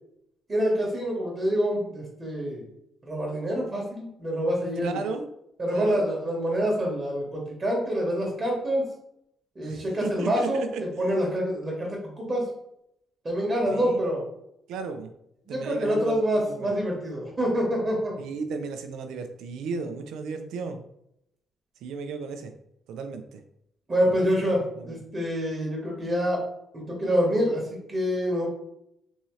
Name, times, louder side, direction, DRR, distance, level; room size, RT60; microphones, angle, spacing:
voice 1, 0.5-2.6 3.0-5.0 5.6-8.8 9.5-12.5 13.2-14.2 15.5-18.1 23.9-26.4 26.7-28.5, equal, 30° right, -1 dB, 1.2 m, -26 dB
voice 2, 4.8-5.2 5.7-6.0 9.6-11.2 13.7-14.0 14.7-15.1 15.5-16.8 18.2-20.8 21.8-22.5 22.9-23.4 24.1-24.3 24.8-24.9, right 4 dB, 85° right, 7 dB, 0.4 m, -35 dB
3.6 x 2.8 x 3.1 m, 0.78 s
cardioid pair, 90°, 0 cm